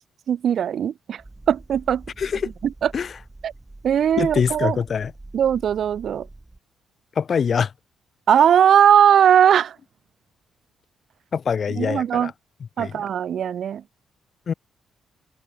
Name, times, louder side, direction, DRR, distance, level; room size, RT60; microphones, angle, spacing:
voice 1, 0.3-1.2 1.5-2.0 2.6-2.9 3.4-3.5 3.8-4.8 5.3-6.3 8.3-9.8 11.8-12.3 12.8-13.8, right 9 dB, 60° right, 0.4 m, -19 dB
sound 1, 1.2-6.6, right 2 dB, 10° right, 5.6 m, -43 dB
voice 2, 2.2-2.5 2.9-3.1 4.2-5.1 7.2-7.7 11.3-12.3 12.8-13.0 14.5-14.6, left 6 dB, 45° left, 0.4 m, -24 dB
cardioid pair, 130°, 0 cm